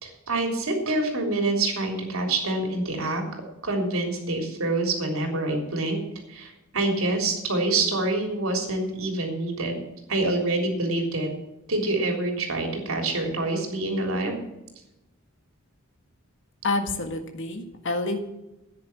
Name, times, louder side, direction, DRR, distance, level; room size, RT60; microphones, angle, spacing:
voice 1, 0.0-6.0 6.3-9.8 10.1-11.3 11.7-14.4, right 2 dB, 75° right, 3 dB, 3.5 m, -26 dB
voice 2, 16.6-18.2, left 2 dB, 60° left, 5 dB, 1.8 m, -28 dB
10.5 x 9.6 x 7.4 m, 0.94 s
head